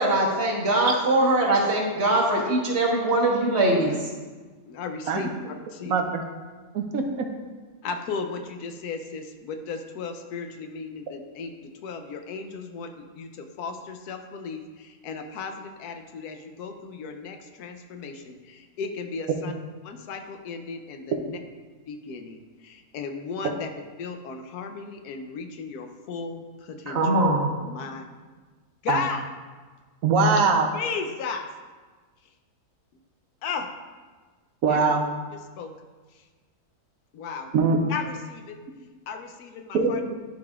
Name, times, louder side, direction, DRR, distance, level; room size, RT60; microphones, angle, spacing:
voice 1, 0.0-3.9 26.9-27.5, right 2 dB, 45° right, -2 dB, 1.4 m, -22 dB
voice 2, 4.7-5.9 7.8-19.5 19.8-21.4 21.9-23.7 24.0-27.2 27.6-28.0 28.8-29.3 30.7-31.5 33.4-33.7 34.7-34.9 35.3-35.7 36.1-36.2 37.1-37.5 37.9-38.6 39.1-40.0, left 5 dB, 80° left, 6 dB, 1.2 m, -35 dB
voice 3, 5.9-6.2 6.7-7.2 28.9-29.0 30.0-30.7 34.6-35.1 37.5-37.8 39.7-40.1, right 4 dB, 70° right, 4 dB, 1.1 m, -22 dB
11.5 x 4.9 x 2.4 m, 1.4 s
omnidirectional pair, 1.6 m